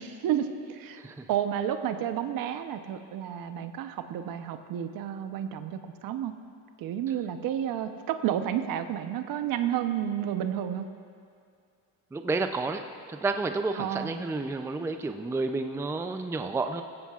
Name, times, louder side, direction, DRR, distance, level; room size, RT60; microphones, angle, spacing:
voice 1, 0.0-1.0 1.3-6.3 6.8-10.9 13.7-14.1, right 10 dB, 60° right, 8 dB, 0.9 m, -31 dB
voice 2, 12.1-12.8 13.1-16.8, right 3 dB, 5° right, 7 dB, 0.5 m, -30 dB
19.0 x 15.5 x 2.5 m, 2.3 s
cardioid pair, 115°, 39 cm